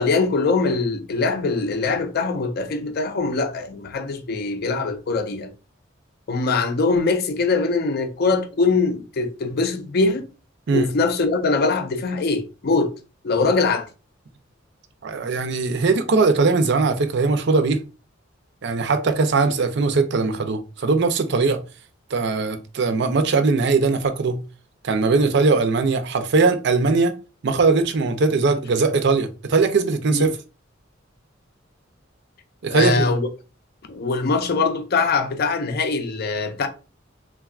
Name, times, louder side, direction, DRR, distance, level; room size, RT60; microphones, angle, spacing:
voice 1, 0.0-5.5 6.3-10.2 10.7-12.9 13.2-13.9 30.1-30.3 32.7-33.3 33.9-36.7, left 4 dB, 55° left, 0.5 m, -22 dB
voice 2, 15.0-17.8 18.6-21.6 22.1-24.4 24.8-27.1 27.4-30.3 32.6-33.1, right 4 dB, 60° right, 0.5 m, -20 dB
3.5 x 2.3 x 2.3 m
head